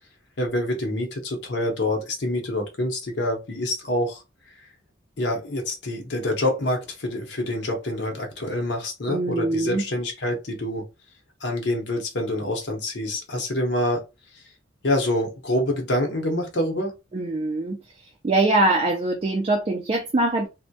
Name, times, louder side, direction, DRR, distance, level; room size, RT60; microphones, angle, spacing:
voice 1, 0.4-4.2 4.6-4.7 5.2-10.8 11.4-14.0 14.3-14.4 14.8-16.9, left 1 dB, 65° left, 0.8 m, -26 dB
voice 2, 9.1-9.8 17.1-17.8 18.2-20.5, right 2 dB, 30° right, 0.3 m, -23 dB
2.2 x 2.1 x 2.7 m
head